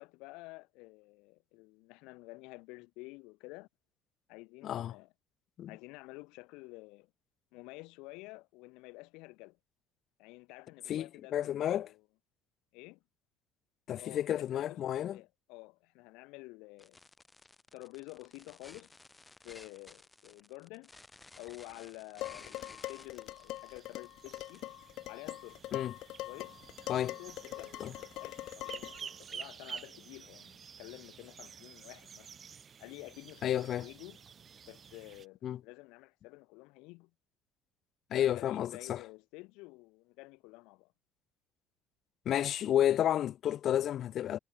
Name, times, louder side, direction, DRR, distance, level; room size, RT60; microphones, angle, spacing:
voice 1, 0.0-3.7 4.3-5.1 5.7-7.1 7.5-9.6 10.2-12.0 12.7-13.0 14.0-14.8 15.1-17.0 17.7-18.9 19.4-20.9 21.4-24.7 25.1-25.6 26.3-26.6 26.9-32.3 32.8-34.2 34.7-37.1 38.1-40.9, left 25 dB, 75° left, 4.7 m, -50 dB
voice 2, 4.6-4.9 5.6-5.7 10.9-11.9 13.9-15.2 25.7-25.9 26.9-27.1 27.8-27.9 33.4-33.9 35.4-35.6 38.1-39.0 42.3-44.4, left 11 dB, 40° left, 0.8 m, -31 dB
sound 1, 16.8-24.7, left 2 dB, 10° left, 4.2 m, -56 dB
Dishes pots and pans, 22.2-29.1, left 16 dB, 55° left, 0.4 m, -43 dB
sound 2, 22.5-35.3, right 7 dB, 25° right, 1.1 m, -51 dB
cardioid pair, 170°, 0 cm